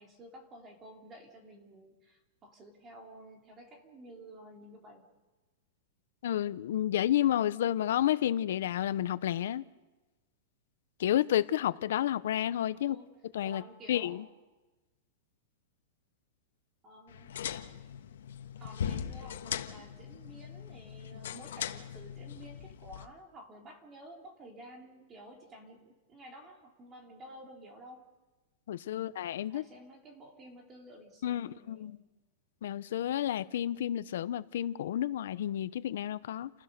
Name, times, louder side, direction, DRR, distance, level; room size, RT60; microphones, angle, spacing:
voice 1, 0.0-5.1 12.8-13.1 13.4-14.2 16.8-17.3 18.6-28.0 28.9-29.2 29.5-32.0, right 1 dB, 15° right, 2.9 m, -52 dB
voice 2, 6.2-9.6 11.0-13.0 13.3-13.6 13.9-14.2 28.7-29.6 31.2-32.0 32.6-36.5, left 11 dB, 65° left, 0.8 m, -30 dB
sound 1, 17.1-23.1, left 8 dB, 85° left, 1.4 m, -40 dB
30.0 x 15.5 x 6.8 m
supercardioid pair, 175°, 0 cm